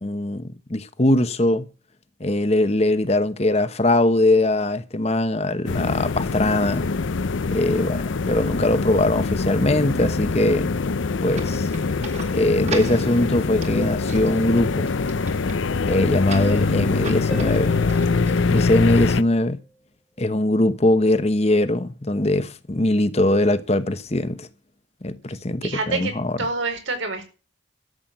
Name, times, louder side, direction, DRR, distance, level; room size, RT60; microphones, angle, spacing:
voice 1, 0.0-1.7 2.2-6.9 7.5-10.7 11.2-11.7 12.3-14.9 15.8-17.8 18.5-19.6 20.2-24.5 25.0-26.4, left 1 dB, 35° left, 1.0 m, -21 dB
sound 1, 5.7-19.2, left 4 dB, 80° left, 0.6 m, -24 dB
sound 2, 11.3-19.0, right 4 dB, 35° right, 2.0 m, -40 dB
Harp, 17.3-19.8 23.3-23.4, right 2 dB, ahead, 1.3 m, -40 dB
voice 2, 25.6-26.1 26.4-27.3, right 3 dB, 85° right, 4.8 m, -26 dB
13.0 x 7.8 x 9.1 m
head